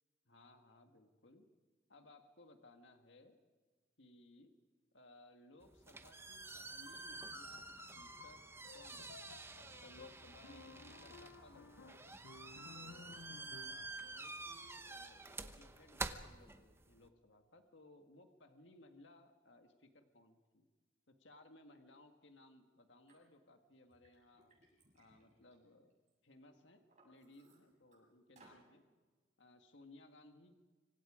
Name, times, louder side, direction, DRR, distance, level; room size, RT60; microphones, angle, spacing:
voice 1, 0.3-1.5 1.9-3.4 4.0-4.5 4.9-12.2 12.7-20.7 21.1-24.5 24.9-25.9 26.2-28.8 29.4-30.6, left 2 dB, 65° left, 6 dB, 1.7 m, -62 dB
sound 1, 5.6-17.1, right 3 dB, 15° right, 0.9 m, -49 dB
sound 2, 6.9-13.9, left 5 dB, 85° left, 0.6 m, -57 dB
Liquid, 23.1-23.2 23.7-26.1 26.6-28.0 28.4-28.6, right 2 dB, 40° right, 7.2 m, -68 dB
25.5 x 25.0 x 5.0 m, 1.3 s
head